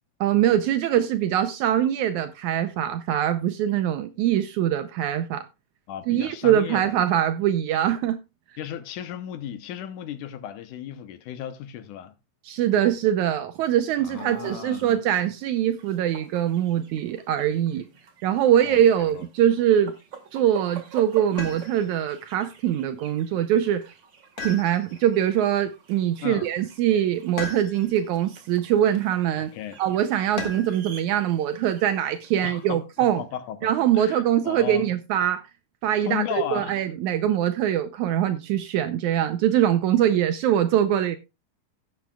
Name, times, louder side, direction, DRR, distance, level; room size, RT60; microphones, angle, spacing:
voice 1, 0.2-5.5 6.1-8.2 12.5-17.9 18.2-19.9 20.3-23.9 24.4-29.5 29.8-33.2 33.6-35.5 35.8-36.2 36.5-41.2, right 10 dB, 80° right, 1.8 m, -23 dB
voice 2, 5.9-6.9 8.6-12.2 14.0-15.0 18.6-19.3 26.2-26.5 29.4-29.8 32.4-34.9 36.0-36.8, left 10 dB, 75° left, 2.1 m, -35 dB
sound 1, 14.0-32.8, right 6 dB, 45° right, 1.8 m, -47 dB
sound 2, 21.4-22.0 24.4-25.2 27.4-28.1 30.4-30.9 32.6-33.2, left 3 dB, 30° left, 2.1 m, -36 dB
16.5 x 7.6 x 2.3 m
omnidirectional pair, 3.9 m